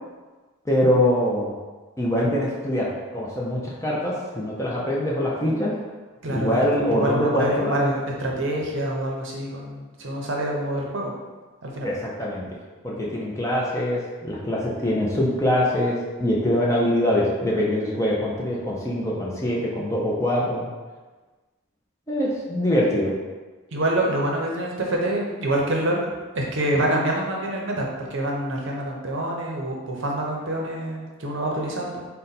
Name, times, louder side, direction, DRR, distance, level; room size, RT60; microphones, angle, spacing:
voice 1, 0.7-1.6 2.0-5.7 6.3-7.8 11.8-12.6 12.8-20.7 22.1-23.1, left 1 dB, 15° left, -5 dB, 0.4 m, -23 dB
voice 2, 6.2-11.1 11.6-11.9 23.7-26.0 26.3-32.1, right 1 dB, 55° right, -1 dB, 0.6 m, -26 dB
3.9 x 2.2 x 4.0 m, 1.3 s
head